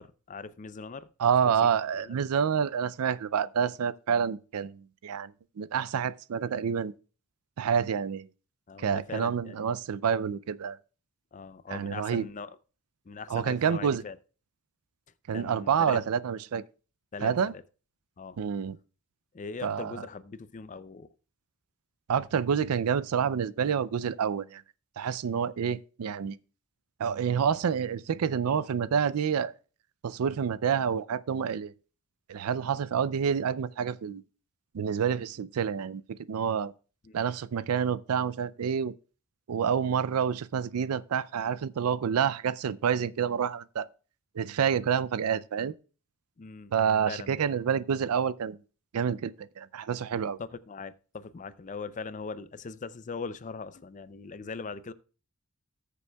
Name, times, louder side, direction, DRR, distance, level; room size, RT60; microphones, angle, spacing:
voice 1, 0.0-1.1 1.4-1.5 2.0-2.1 8.7-9.7 11.3-12.5 13.1-14.2 15.3-16.0 17.1-17.6 18.2-18.4 19.3-21.1 37.0-37.1 46.4-46.7 47.1-47.5 50.2-54.9, left 4 dB, 35° left, 0.5 m, -40 dB
voice 2, 1.2-5.3 5.6-6.9 7.6-8.3 8.8-10.8 11.7-12.3 13.3-14.0 15.3-16.6 17.2-17.5 18.4-18.8 19.6-20.1 22.1-24.6 25.0-26.4 27.0-29.5 30.0-31.7 32.3-34.2 34.7-36.0 36.3-36.7 37.1-38.9 39.5-43.9 44.4-45.7 46.7-48.6 48.9-50.4, right 7 dB, 90° right, 0.4 m, -28 dB
18.0 x 6.9 x 2.3 m
head